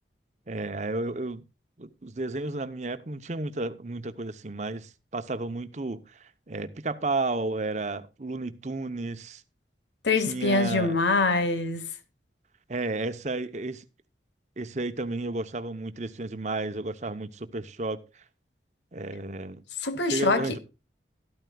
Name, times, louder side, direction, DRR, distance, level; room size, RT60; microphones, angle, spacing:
voice 1, 0.5-1.4 1.8-9.4 10.3-11.0 12.7-13.8 14.6-18.2 18.9-19.6 20.1-20.6, right 2 dB, 40° right, 0.8 m, -32 dB
voice 2, 10.0-11.8 19.8-20.6, left 3 dB, 85° left, 1.2 m, -24 dB
13.0 x 12.5 x 2.3 m
head